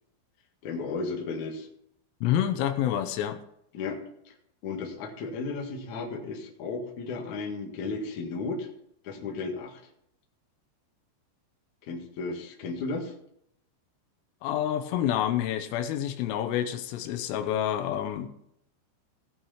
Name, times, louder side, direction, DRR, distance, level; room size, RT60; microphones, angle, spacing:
voice 1, 0.6-1.7 3.7-4.0 4.3-4.4 4.6-8.7 9.0-9.8 11.8-13.1, left 3 dB, 55° left, 1 dB, 2.3 m, -34 dB
voice 2, 2.2-3.4 14.4-18.3, left 10 dB, 85° left, 8 dB, 3.6 m, -28 dB
17.5 x 5.9 x 5.6 m, 0.73 s
omnidirectional pair, 5.8 m